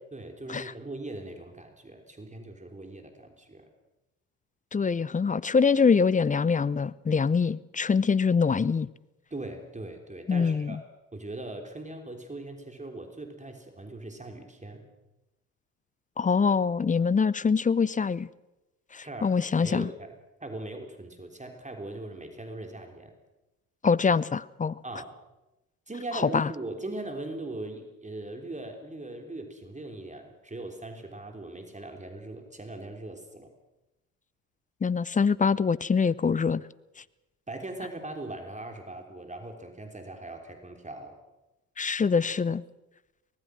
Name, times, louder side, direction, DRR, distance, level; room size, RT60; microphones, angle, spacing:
voice 1, 0.1-3.7 9.3-10.8 11.1-14.8 19.0-19.3 19.6-20.1 20.4-23.1 24.8-25.2 25.9-33.5 37.5-41.2, right 2 dB, 15° right, 4 dB, 3.6 m, -40 dB
voice 2, 4.7-8.9 10.3-10.8 16.2-18.3 18.9-19.9 23.8-24.8 26.3-26.5 34.8-36.6 41.8-42.6, left 5 dB, 20° left, 19 dB, 0.6 m, -24 dB
24.0 x 19.0 x 6.3 m, 0.98 s
hypercardioid pair, 60°, 44 cm